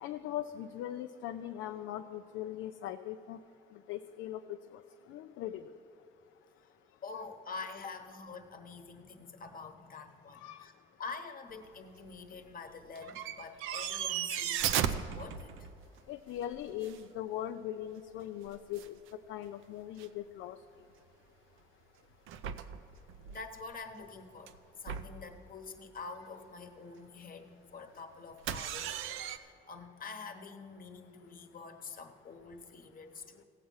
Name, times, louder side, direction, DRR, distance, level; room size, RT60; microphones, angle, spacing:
voice 1, 0.0-3.4 3.9-4.8 5.1-5.7 7.1-7.2 10.3-10.6 16.1-18.9 19.3-20.6, left 11 dB, 85° left, 7 dB, 0.4 m, -40 dB
voice 2, 7.0-10.7 11.0-15.7 23.3-33.4, left 4 dB, 45° left, 6 dB, 1.1 m, -46 dB
sound 1, 12.0-12.4 13.0-16.0 16.4-17.0 18.2-18.3 18.5-19.1 19.4-19.5 20.0-20.1 22.3-23.5 24.5-24.6 24.9-25.3 28.4-29.4, right 9 dB, 90° right, 0.5 m, -36 dB
16.5 x 7.4 x 5.5 m, 2.6 s
cardioid pair, 90°, 20 cm